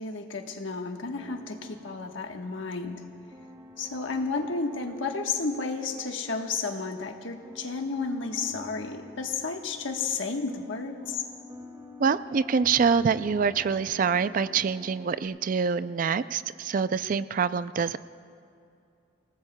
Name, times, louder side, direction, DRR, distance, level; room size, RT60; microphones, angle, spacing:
voice 1, 0.0-3.0 3.8-11.2, left 4 dB, 75° left, 4 dB, 1.2 m, -32 dB
sound 1, 1.1-15.2, left 2 dB, 25° right, 2.0 m, -48 dB
voice 2, 12.0-18.0, right 6 dB, 45° right, 14 dB, 0.3 m, -25 dB
28.5 x 18.5 x 2.2 m, 2.5 s
head